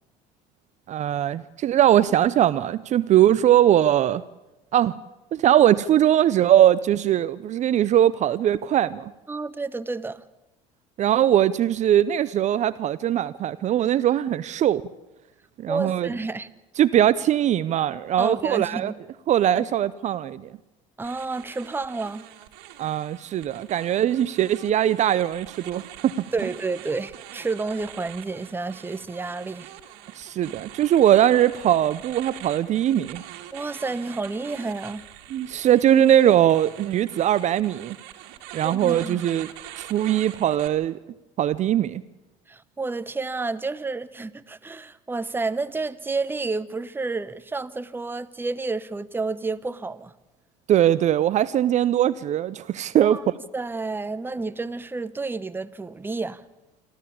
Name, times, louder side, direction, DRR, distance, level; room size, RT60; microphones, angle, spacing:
voice 1, 0.9-4.2 4.7-5.0 5.3-9.1 11.0-14.8 15.6-16.1 16.8-18.9 19.3-20.5 22.8-26.3 30.2-33.2 35.3-38.0 38.5-39.5 39.8-41.0 41.4-42.0 50.7-53.2, right 11 dB, 45° right, 0.6 m, -21 dB
voice 2, 9.3-10.2 15.7-16.5 18.2-19.0 19.6-19.7 21.0-22.2 26.3-29.7 33.5-35.0 38.6-39.3 42.5-50.1 53.0-53.2 53.5-56.4, right 3 dB, 15° right, 0.9 m, -30 dB
sound 1, 21.0-40.7, right 13 dB, 70° right, 2.2 m, -44 dB
26.5 x 13.5 x 8.7 m
supercardioid pair, 85°, 16 cm